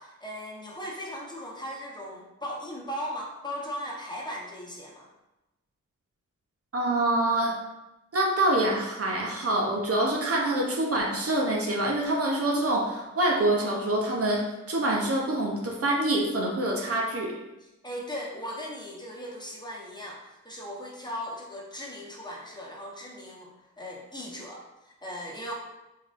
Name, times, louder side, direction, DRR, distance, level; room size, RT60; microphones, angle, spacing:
voice 1, 0.0-5.1 17.8-23.5 23.8-25.5, equal, 15° left, -3 dB, 1.0 m, -38 dB
voice 2, 6.7-7.6 8.1-17.3, right 1 dB, 55° right, -1 dB, 0.8 m, -26 dB
3.9 x 3.5 x 2.6 m, 0.99 s
cardioid pair, 55°, 29 cm